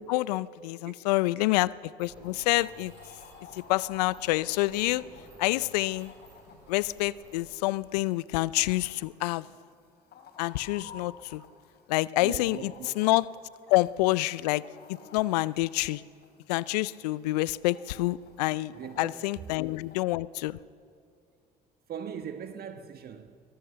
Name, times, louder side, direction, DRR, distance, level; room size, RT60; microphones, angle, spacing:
voice 1, 0.0-1.7 2.0-2.9 3.7-5.0 5.4-6.1 6.7-9.4 10.4-11.4 11.9-13.3 13.7-14.6 15.1-16.0 16.5-18.7 19.0-20.6, left 19 dB, 75° left, 0.5 m, -27 dB
Mechanisms, 2.0-7.5, right 1 dB, 90° right, 6.1 m, -54 dB
Chicken rooster, 2.2-20.0, left 6 dB, 55° left, 3.1 m, -54 dB
voice 2, 12.2-12.9 18.7-19.1 21.9-23.4, right 8 dB, 50° right, 1.4 m, -40 dB
23.5 x 19.0 x 6.8 m
hypercardioid pair, 55°, 20 cm